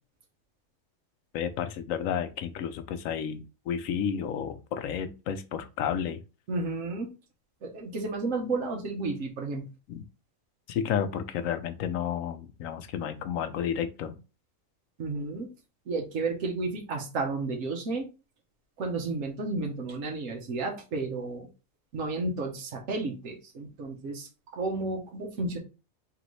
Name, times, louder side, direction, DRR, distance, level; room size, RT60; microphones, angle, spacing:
voice 1, 1.3-6.2 9.9-10.0 10.7-14.2, left 8 dB, 80° left, 10 dB, 1.0 m, -31 dB
voice 2, 6.5-7.1 7.6-9.6 15.0-15.5 15.9-18.1 18.8-21.5 21.9-25.6, right 3 dB, 70° right, 1 dB, 1.4 m, -32 dB
3.9 x 3.5 x 3.1 m, 0.30 s
omnidirectional pair, 1.4 m